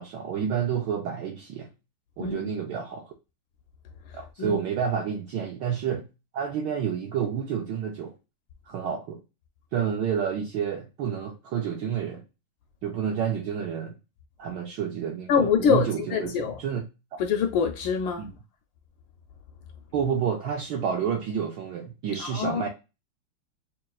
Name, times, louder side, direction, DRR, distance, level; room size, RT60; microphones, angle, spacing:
voice 1, 0.0-1.7 2.2-3.1 4.1-6.0 6.3-8.1 8.7-9.2 9.7-12.2 12.8-13.9 14.4-16.8 17.1-17.2 18.2-18.3 19.9-22.7, right 7 dB, 80° right, 1.0 m, -29 dB
voice 2, 4.1-4.6 15.3-16.6 17.2-18.2 22.2-22.7, left 7 dB, 75° left, 1.1 m, -25 dB
5.7 x 2.4 x 2.3 m
omnidirectional pair, 2.4 m